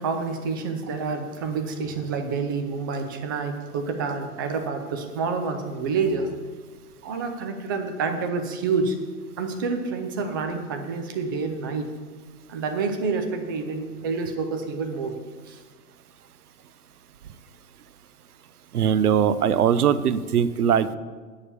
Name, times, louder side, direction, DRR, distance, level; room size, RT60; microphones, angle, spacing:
voice 1, 0.0-6.3 7.0-9.0 9.4-11.9 12.5-15.2 15.5-15.6, right 4 dB, 15° right, 5 dB, 0.4 m, -28 dB
voice 2, 18.7-21.0, right 8 dB, 75° right, 14 dB, 0.7 m, -21 dB
8.7 x 6.9 x 7.0 m, 1.4 s
hypercardioid pair, 130°, 46 cm